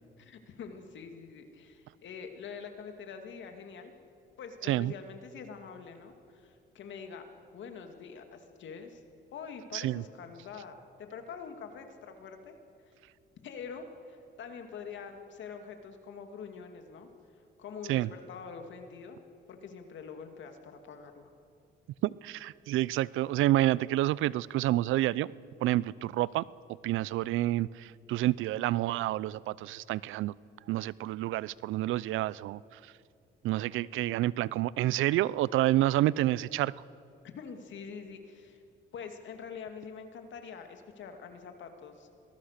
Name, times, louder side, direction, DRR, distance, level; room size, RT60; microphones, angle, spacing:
voice 1, 0.2-3.9 4.4-7.2 7.5-9.0 9.3-12.5 13.4-17.1 17.6-19.2 19.5-21.3 34.4-34.5 37.4-38.6 38.9-42.1, left 6 dB, 70° left, 6 dB, 2.3 m, -45 dB
voice 2, 4.6-4.9 9.7-10.0 17.9-18.1 22.0-25.3 25.6-26.4 26.8-30.3 30.7-32.9 33.4-36.7, right 15 dB, 85° right, 21 dB, 0.5 m, -29 dB
25.0 x 19.5 x 6.6 m, 2.5 s
cardioid pair, 90°, 20 cm